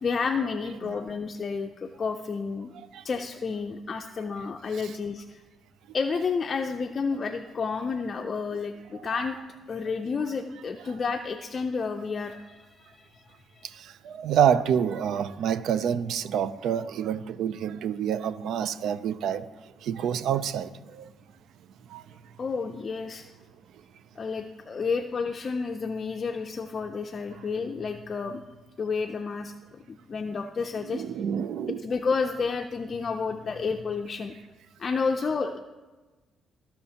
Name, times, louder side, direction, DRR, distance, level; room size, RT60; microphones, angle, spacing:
voice 1, 0.0-2.7 3.0-5.4 5.9-9.4 9.7-13.7 22.4-23.3 24.2-28.4 28.8-31.0 31.8-34.3 34.8-35.6, left 5 dB, 40° left, 5 dB, 0.4 m, -30 dB
voice 2, 13.6-19.5 19.8-21.1 21.9-22.2 30.9-31.8, right 8 dB, 80° right, 14 dB, 0.4 m, -28 dB
16.5 x 5.6 x 2.9 m, 1.3 s
cardioid pair, 90°, 0 cm